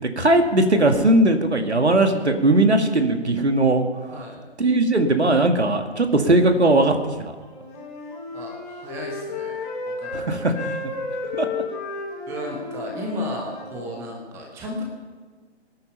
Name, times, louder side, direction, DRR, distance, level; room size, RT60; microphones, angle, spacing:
voice 1, 0.0-3.8 4.6-6.9 7.2-7.3 10.1-10.7 11.3-11.5, right 2 dB, 70° right, 5 dB, 2.2 m, -19 dB
voice 2, 4.1-4.5 8.3-9.5 9.8-10.7 12.3-14.8, left 1 dB, 10° right, 0 dB, 1.3 m, -34 dB
Wind instrument woodwind instrument, 7.4-10.3 10.5-13.8, left 3 dB, 20° left, 3.4 m, -33 dB
23.0 x 9.9 x 5.7 m, 1.5 s
figure-of-eight pair, 145°, 35 cm